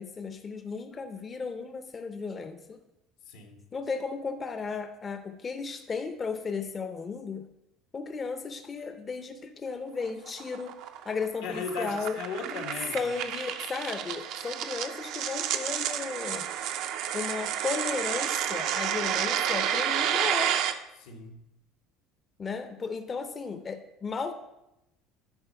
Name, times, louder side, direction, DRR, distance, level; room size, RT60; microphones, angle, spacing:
voice 1, 0.0-2.8 3.7-7.5 7.9-12.2 12.9-16.5 17.1-20.6 22.4-24.3, left 4 dB, 25° left, 8 dB, 0.6 m, -35 dB
voice 2, 3.3-3.6 11.4-13.1 21.0-21.4, left 4 dB, 85° left, 4 dB, 1.5 m, -37 dB
sound 1, 10.0-20.7, right 10 dB, 65° right, 0.6 m, -30 dB
10.5 x 4.2 x 5.5 m, 0.89 s
cardioid pair, 125°, 0 cm